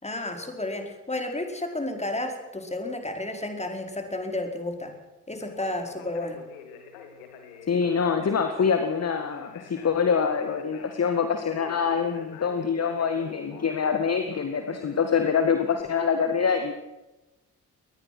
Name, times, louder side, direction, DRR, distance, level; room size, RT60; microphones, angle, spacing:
voice 1, 0.0-4.9 5.3-6.4, left 1 dB, 15° left, 4 dB, 5.0 m, -32 dB
Conversation, 5.3-15.8, left 6 dB, 70° left, 2.9 m, -46 dB
voice 2, 7.7-16.7, left 6 dB, 35° left, 7 dB, 2.0 m, -25 dB
23.5 x 20.0 x 6.2 m, 1.0 s
figure-of-eight pair, 40°, 45 cm